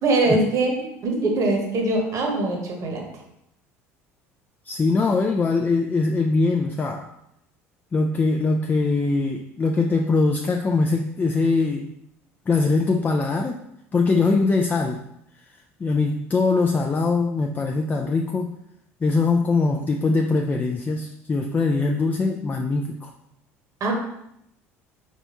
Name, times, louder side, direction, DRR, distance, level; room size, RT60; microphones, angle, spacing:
voice 1, 0.0-3.0 23.8-23.9, right 2 dB, 50° right, 1 dB, 1.2 m, -22 dB
voice 2, 4.7-7.1 7.9-11.9 12.5-13.6 13.9-15.0 15.8-18.6 19.0-23.1, left 3 dB, 25° left, 3 dB, 0.4 m, -22 dB
4.0 x 3.5 x 3.0 m, 0.78 s
hypercardioid pair, 70°, 7 cm